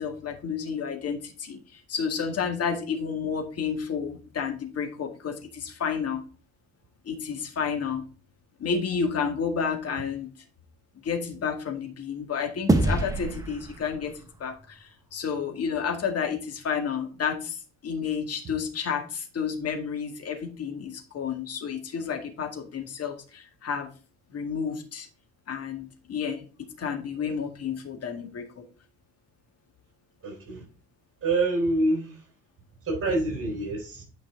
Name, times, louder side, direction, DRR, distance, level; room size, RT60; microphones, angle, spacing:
voice 1, 0.0-6.2 7.0-8.0 8.6-10.3 11.0-23.9 24.3-25.1 25.5-28.7, left 6 dB, 40° left, 3 dB, 2.0 m, -31 dB
sound 1, 12.7-15.3, right 2 dB, 10° right, 1.3 m, -27 dB
voice 2, 30.2-30.6 31.2-32.2 32.8-34.0, right 2 dB, 35° right, 1 dB, 4.0 m, -26 dB
9.3 x 5.3 x 3.7 m, 0.37 s
figure-of-eight pair, 55°, 38 cm